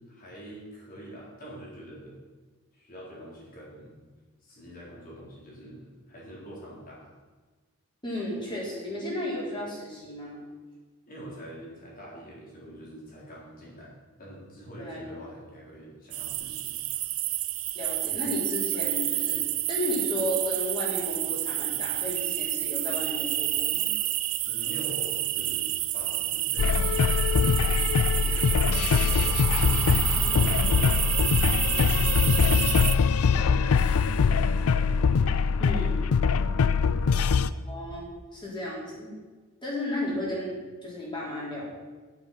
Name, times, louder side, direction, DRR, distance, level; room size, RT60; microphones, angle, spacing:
voice 1, 0.1-2.2 2.7-3.9 4.4-7.1 11.1-16.9 24.4-27.9 28.2-31.3 31.6-33.8 34.2-35.0 37.0-37.3, equal, 40° left, -5 dB, 4.1 m, -45 dB
voice 2, 8.0-10.4 14.8-15.2 17.7-23.9 35.6-36.0 37.7-39.1 39.6-41.7, left 1 dB, 20° left, -5 dB, 4.1 m, -33 dB
sound 1, 16.1-33.0, right 15 dB, 70° right, 0.6 m, -29 dB
sound 2, 26.6-37.5, left 5 dB, 75° left, 0.4 m, -23 dB
10.5 x 9.3 x 5.8 m, 1.3 s
head